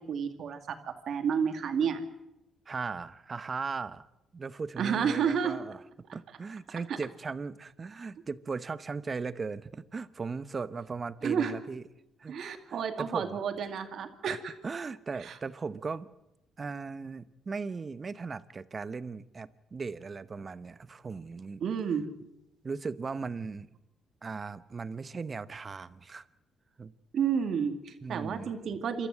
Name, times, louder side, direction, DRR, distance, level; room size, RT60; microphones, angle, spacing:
voice 1, 0.1-0.8 1.1-2.0 4.8-5.6 6.9-7.0 11.2-11.5 12.3-14.5 15.2-15.3 21.6-22.1 27.1-29.1, right 7 dB, 65° right, 7 dB, 2.2 m, -30 dB
voice 2, 2.7-4.1 4.3-5.8 6.1-11.8 12.2-12.4 12.6-13.4 14.3-14.4 14.6-16.1 16.6-21.6 22.6-23.7 24.2-26.3 26.8-26.9 28.0-28.5, right 4 dB, 35° right, 15 dB, 0.9 m, -38 dB
28.5 x 13.5 x 7.7 m, 0.92 s
cardioid pair, 90°, 0 cm